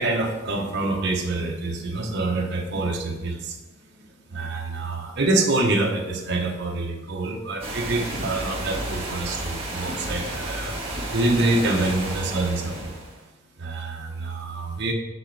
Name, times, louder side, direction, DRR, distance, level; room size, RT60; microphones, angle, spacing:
voice 1, 0.0-3.6 4.0-10.8 11.1-13.0 13.6-14.9, right 2 dB, 55° right, 2 dB, 1.0 m, -26 dB
sound 1, 7.6-13.2, right 1 dB, 30° right, 1.7 m, -32 dB
7.9 x 6.4 x 3.4 m, 1.1 s
head